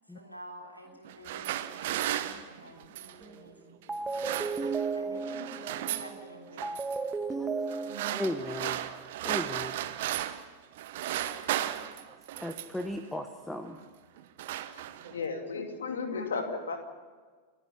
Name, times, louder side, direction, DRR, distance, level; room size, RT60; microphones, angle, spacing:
voice 1, 0.1-4.3 4.9-6.9, right 1 dB, 90° left, 1 dB, 3.4 m, -49 dB
sound 1, 1.0-3.2 3.9-5.0 5.2-6.1 6.6-7.0 7.7-10.5 10.8-12.9 13.6-13.9 14.2-15.3, right 13 dB, 55° right, 1.0 m, -35 dB
sound 2, 3.2-3.5 3.9-9.0, right 4 dB, 15° right, 1.5 m, -35 dB
voice 2, 8.0-8.8 9.2-9.8 11.0-12.0 12.3-13.8, left 1 dB, 5° left, 7 dB, 1.2 m, -37 dB
voice 3, 14.8-16.8, left 4 dB, 65° left, 5 dB, 2.6 m, -34 dB
29.5 x 10.0 x 9.9 m, 1.5 s
figure-of-eight pair, 90°, 0 cm